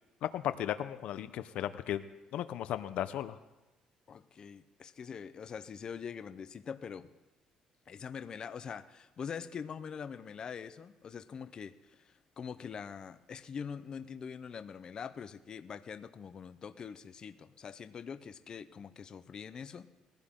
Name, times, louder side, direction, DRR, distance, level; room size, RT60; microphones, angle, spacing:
voice 1, 0.2-2.0 2.3-3.4, left 11 dB, 70° left, 12 dB, 0.7 m, -35 dB
voice 2, 4.1-7.1 7.9-19.9, left 6 dB, 40° left, 10 dB, 0.7 m, -44 dB
21.0 x 15.5 x 3.8 m, 1.1 s
cardioid pair, 120°, 2 cm